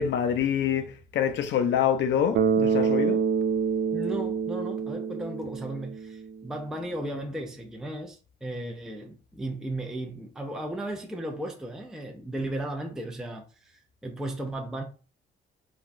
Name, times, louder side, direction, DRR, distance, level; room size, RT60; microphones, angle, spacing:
voice 1, 0.0-3.2, left 8 dB, 65° left, 0.6 m, -26 dB
Bass guitar, 2.3-6.3, right 6 dB, 70° right, 0.4 m, -26 dB
voice 2, 3.9-14.8, right 1 dB, 5° right, 0.4 m, -35 dB
3.3 x 2.2 x 2.5 m
cardioid pair, 90°, 20 cm